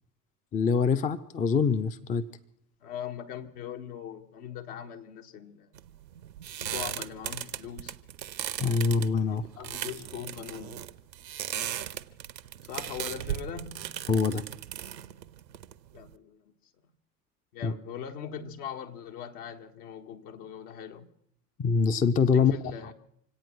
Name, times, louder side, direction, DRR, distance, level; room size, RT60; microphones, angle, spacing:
voice 1, 0.5-2.2 8.6-9.4 14.1-14.4 17.6-17.7 21.6-22.5, left 5 dB, 15° left, 0.5 m, -24 dB
voice 2, 2.8-5.7 6.6-7.9 9.3-10.8 12.6-13.9 15.9-16.5 17.5-21.1 22.3-22.9, left 8 dB, 65° left, 1.7 m, -41 dB
sound 1, 5.8-16.1, right 11 dB, 80° right, 0.8 m, -37 dB
26.0 x 8.8 x 6.2 m
figure-of-eight pair, 70°, 50 cm